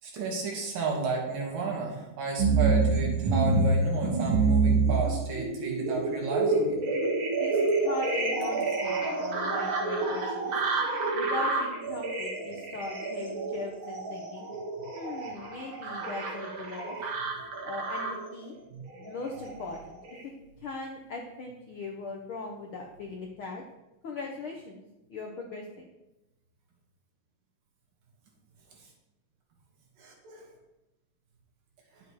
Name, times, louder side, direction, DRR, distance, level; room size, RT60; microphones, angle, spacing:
voice 1, 0.0-6.8 18.7-18.8 30.0-30.4, right 3 dB, 85° right, -1 dB, 3.9 m, -32 dB
sound 1, 2.4-18.3 18.9-19.6 20.1-20.2, right 3 dB, 50° right, 2.0 m, -28 dB
voice 2, 7.4-10.5 11.1-14.5 14.9-17.0 17.6-18.5 18.9-20.3 20.6-23.6 24.0-24.8 25.1-25.9, left 3 dB, 80° left, 1 dB, 1.1 m, -39 dB
11.0 x 7.9 x 4.7 m, 0.97 s
omnidirectional pair, 3.8 m